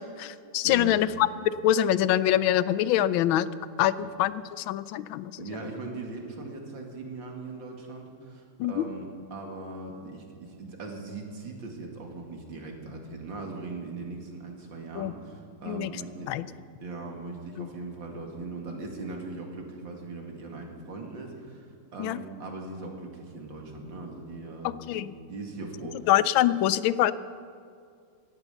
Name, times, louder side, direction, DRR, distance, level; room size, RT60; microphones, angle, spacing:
voice 1, 0.0-3.5 3.8-5.4 8.6-8.8 14.9-15.1 15.7-15.9 16.3-16.4 17.6-17.7 22.0-22.2 24.6-25.1 26.1-27.1, left 12 dB, 85° left, 16 dB, 1.4 m, -25 dB
voice 2, 0.6-1.0 4.0-4.1 5.4-16.3 16.8-21.7 21.9-26.1, right 3 dB, 70° right, 2 dB, 2.9 m, -39 dB
17.0 x 12.5 x 7.0 m, 2.2 s
omnidirectional pair, 2.1 m